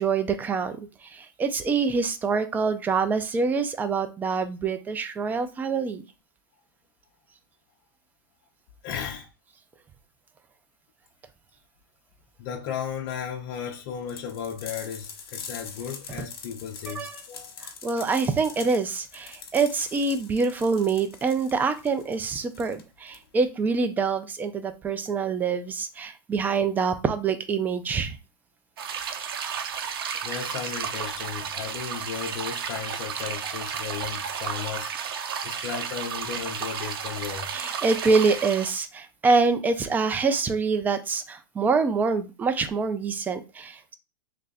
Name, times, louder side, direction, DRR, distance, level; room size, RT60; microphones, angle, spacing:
voice 1, 0.0-6.0 16.9-17.2 17.6-28.2 37.5-43.9, right 4 dB, 15° right, 0.4 m, -25 dB
voice 2, 8.8-9.3 12.4-17.5 30.2-34.9 35.4-37.5, left 8 dB, 45° left, 0.7 m, -35 dB
sound 1, 14.1-23.5, left 6 dB, 80° left, 1.0 m, -43 dB
sound 2, 28.8-38.8, right 7 dB, 70° right, 0.7 m, -33 dB
3.3 x 2.5 x 4.0 m
hypercardioid pair, 135°, 13 cm